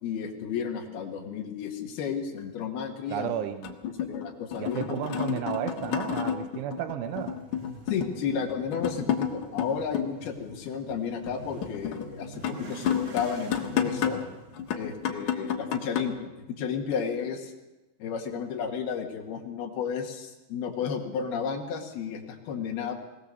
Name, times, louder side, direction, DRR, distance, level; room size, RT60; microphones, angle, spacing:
voice 1, 0.0-3.3 3.8-5.0 5.3-5.5 7.9-14.2 14.8-17.5 18.0-22.9, left 7 dB, 60° left, 2 dB, 3.4 m, -33 dB
sound 1, 2.4-2.5 3.6-10.1 10.5-14.3 14.6-16.0, left 9 dB, 90° left, 1.6 m, -31 dB
voice 2, 3.1-3.7 4.6-7.4, right 10 dB, 80° right, 8 dB, 3.3 m, -33 dB
Motorcycle / Accelerating revving vroom, 7.1-16.0, right 3 dB, 55° right, 1.8 m, -46 dB
21.5 x 18.5 x 6.8 m, 1.0 s
omnidirectional pair, 5.7 m